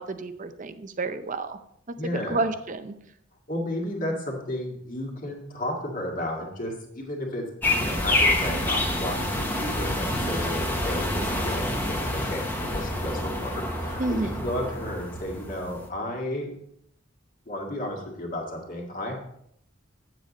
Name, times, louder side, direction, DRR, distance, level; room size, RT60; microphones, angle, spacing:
voice 1, 0.0-1.6 2.1-2.9 14.0-14.5, right 2 dB, 40° right, 11 dB, 0.6 m, -30 dB
voice 2, 2.0-2.5 3.5-7.5 7.8-16.5 17.5-19.2, left 1 dB, 40° left, 0 dB, 1.9 m, -33 dB
sound 1, 7.6-15.9, left 1 dB, 10° left, 1.0 m, -27 dB
9.0 x 7.4 x 4.1 m, 0.75 s
head